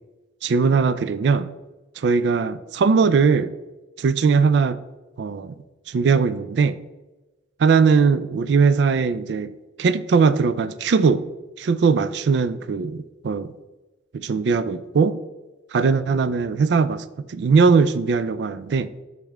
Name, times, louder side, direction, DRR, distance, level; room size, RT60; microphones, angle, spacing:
voice 1, 0.4-1.5 2.0-3.5 4.0-4.8 5.2-5.5 5.9-6.8 7.6-9.5 9.8-11.2 11.6-13.5 14.1-15.2 15.7-18.9, right 5 dB, 70° right, 14 dB, 0.3 m, -20 dB
6.0 x 5.3 x 3.4 m, 1.1 s
head